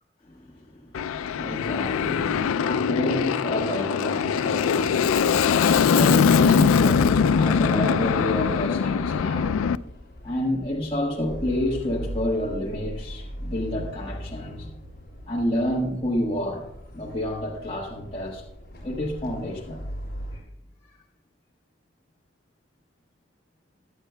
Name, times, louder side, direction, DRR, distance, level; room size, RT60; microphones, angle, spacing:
voice 1, 0.2-9.6 10.2-14.7 15.3-18.4 18.8-19.8, left 1 dB, 25° left, -3 dB, 1.4 m, -29 dB
Aircraft, 0.9-9.8, left 6 dB, 85° left, 0.4 m, -22 dB
sound 1, 6.5-20.4, equal, 45° left, 4.9 m, -40 dB
22.5 x 8.1 x 2.2 m, 0.78 s
head